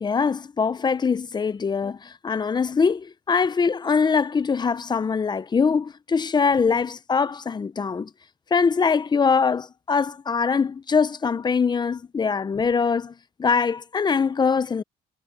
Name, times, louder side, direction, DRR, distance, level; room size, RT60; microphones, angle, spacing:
voice 1, 0.0-8.1 8.5-13.1 13.4-14.8, left 5 dB, 25° left, 0.9 m, -23 dB
cardioid pair, 110°, 17 cm